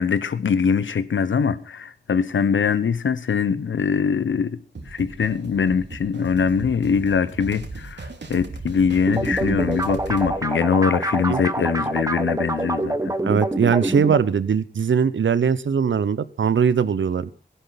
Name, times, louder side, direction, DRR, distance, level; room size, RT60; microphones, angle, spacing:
voice 1, 0.0-4.6 4.9-13.1, left 6 dB, 90° left, 1.0 m, -22 dB
sound 1, 4.8-10.4, right 3 dB, 65° right, 2.6 m, -37 dB
sound 2, 9.1-14.2, right 1 dB, 15° right, 1.2 m, -26 dB
voice 2, 13.2-17.3, right 7 dB, 85° right, 0.9 m, -21 dB
16.0 x 11.5 x 5.8 m
wide cardioid pair, 85°, 19 cm